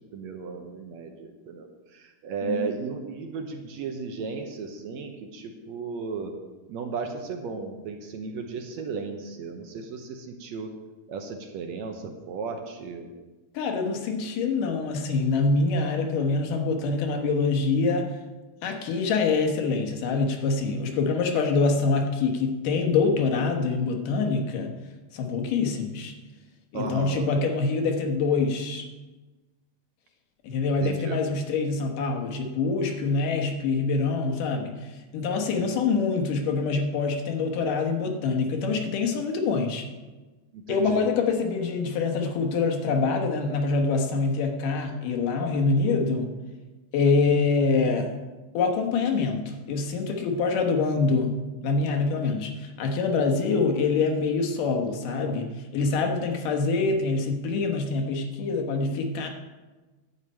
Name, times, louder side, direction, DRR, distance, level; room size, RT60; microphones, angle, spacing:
voice 1, 0.1-6.3 6.7-10.7 11.1-13.1 26.7-27.3 30.8-31.2 35.5-35.7 40.5-41.1, right 5 dB, 70° right, 4 dB, 1.9 m, -35 dB
voice 2, 13.5-18.1 18.6-24.7 25.1-26.1 26.7-28.8 30.4-34.7 35.1-39.8 40.7-46.3 46.9-48.1 48.5-51.3 51.6-59.3, left 4 dB, 80° left, 3 dB, 2.8 m, -25 dB
11.0 x 5.4 x 8.5 m, 1.2 s
omnidirectional pair, 3.7 m